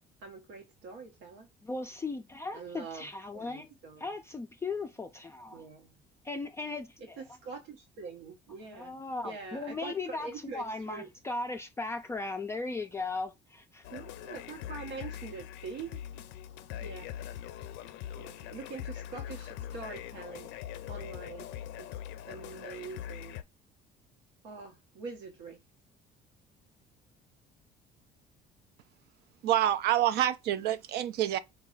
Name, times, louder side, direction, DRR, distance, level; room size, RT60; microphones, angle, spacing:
voice 1, 0.2-1.5 2.5-3.1 3.3-4.1 5.5-5.9 7.2-9.0 9.2-11.1 13.9-16.0 16.8-17.1 18.2-20.5 20.9-21.5 21.8-21.9 22.3-23.4 24.4-25.6, right 4 dB, 90° right, 0.9 m, -44 dB
voice 2, 1.6-3.7 4.0-5.7 6.2-7.2 8.7-13.9, left 3 dB, 15° left, 0.3 m, -37 dB
sound 1, 13.8-23.4, left 11 dB, 90° left, 0.4 m, -42 dB
voice 3, 29.4-31.4, right 12 dB, 65° right, 0.4 m, -27 dB
4.1 x 2.3 x 3.7 m
cardioid pair, 120°, 18 cm